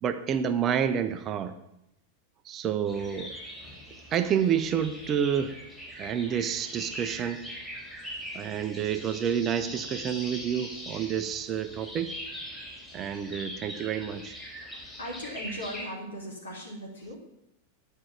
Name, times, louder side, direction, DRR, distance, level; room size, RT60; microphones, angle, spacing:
voice 1, 0.0-1.5 2.5-3.3 4.1-5.5 6.0-7.4 8.3-12.1 12.9-14.4, right 8 dB, 30° right, 9 dB, 0.7 m, -29 dB
sound 1, 2.8-15.9, equal, 5° left, 3.6 m, -42 dB
voice 2, 15.0-17.2, equal, 70° left, 0 dB, 2.8 m, -38 dB
10.0 x 5.5 x 7.0 m, 0.80 s
figure-of-eight pair, 90°, 0 cm